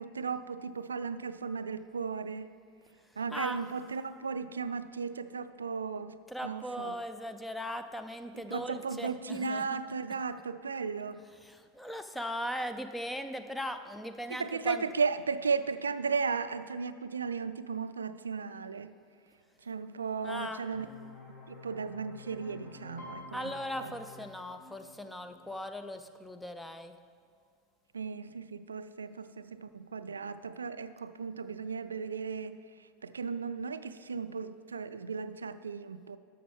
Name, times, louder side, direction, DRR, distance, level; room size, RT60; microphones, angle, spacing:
voice 1, 0.0-2.5 3.2-6.2 6.4-7.0 8.3-11.2 14.4-18.9 19.6-20.9 21.5-23.5 23.8-24.0 27.9-32.6 33.0-36.2, right 5 dB, 80° right, 13 dB, 0.3 m, -35 dB
voice 2, 6.3-9.8 11.4-14.8 20.2-20.6 23.3-27.0, equal, 5° left, 9 dB, 0.5 m, -39 dB
sound 1, 20.7-26.1, left 4 dB, 30° left, 2.3 m, -52 dB
Piano, 23.0-26.6 27.0-27.4 27.7-28.4 28.9-29.0 29.3-30.3 30.7-30.8, left 1 dB, 60° left, 2.0 m, -53 dB
12.5 x 7.1 x 3.5 m, 2.4 s
figure-of-eight pair, 85°, 0 cm